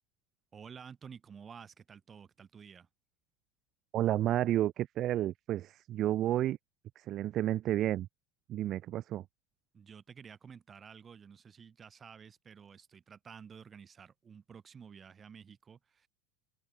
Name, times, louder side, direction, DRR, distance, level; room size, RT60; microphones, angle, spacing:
voice 1, 0.5-2.9 9.7-16.1, right 6 dB, 30° right, 4.8 m, -52 dB
voice 2, 3.9-6.6 7.0-8.1 8.5-9.2, right 13 dB, 45° right, 0.5 m, -31 dB
open air
hypercardioid pair, 80°, 0 cm